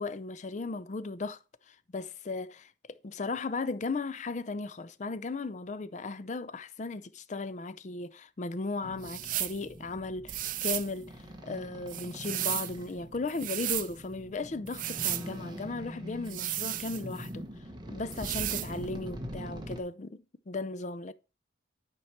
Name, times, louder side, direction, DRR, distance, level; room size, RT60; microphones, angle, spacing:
voice 1, 0.0-1.4 1.7-11.1 11.4-17.5 17.9-21.1, left 3 dB, 40° left, 0.5 m, -36 dB
sound 1, 8.8-19.8, equal, 25° right, 1.1 m, -43 dB
sound 2, 9.0-9.6 10.3-10.9 11.9-12.7 13.3-13.9 14.7-15.3 16.3-17.3 18.1-18.7, right 14 dB, 45° right, 0.4 m, -34 dB
9.4 x 4.7 x 4.3 m
head